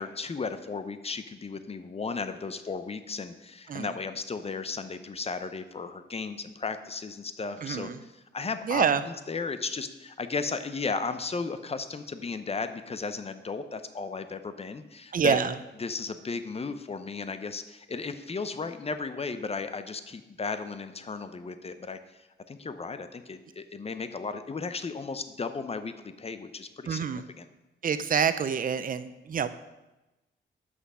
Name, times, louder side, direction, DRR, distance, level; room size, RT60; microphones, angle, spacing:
voice 1, 0.0-8.9 9.3-15.4 15.8-22.0 22.5-27.0 27.4-27.5, left 4 dB, 30° left, 10 dB, 0.6 m, -35 dB
voice 2, 7.6-8.0 8.6-9.0 15.1-15.6 26.9-27.2 27.8-29.5, right 7 dB, 45° right, 12 dB, 0.5 m, -27 dB
6.3 x 5.8 x 5.4 m, 1.0 s
cardioid pair, 90°, 20 cm